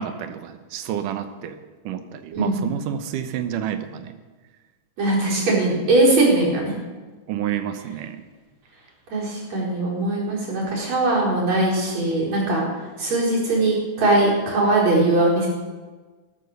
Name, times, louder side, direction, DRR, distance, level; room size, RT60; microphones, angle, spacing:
voice 1, 0.0-1.6 1.8-4.2 7.3-8.2, right 9 dB, 85° right, 9 dB, 2.6 m, -29 dB
voice 2, 5.0-6.7 9.1-12.7 13.0-15.5, right 2 dB, 60° right, -5 dB, 5.8 m, -20 dB
13.5 x 13.0 x 6.7 m, 1.3 s
omnidirectional pair, 3.6 m